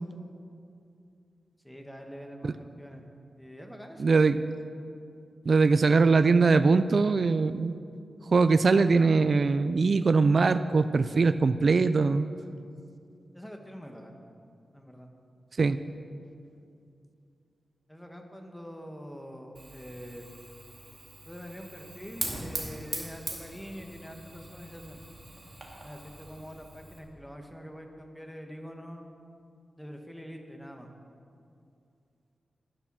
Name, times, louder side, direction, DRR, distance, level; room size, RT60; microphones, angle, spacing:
voice 1, 1.6-2.5 2.8-3.0 3.4-4.2 13.3-14.2 14.7-15.1 17.9-20.3 21.2-25.0 25.8-29.1 29.8-30.9, equal, 5° left, 3 dB, 1.4 m, -44 dB
voice 2, 4.0-4.4 5.5-7.7 8.3-12.3 15.6-15.8, right 4 dB, 50° right, 12 dB, 0.4 m, -22 dB
Fire, 19.6-27.0, right 2 dB, 25° right, 2.5 m, -41 dB
11.5 x 10.5 x 6.1 m, 2.5 s
wide cardioid pair, 95°, 0 cm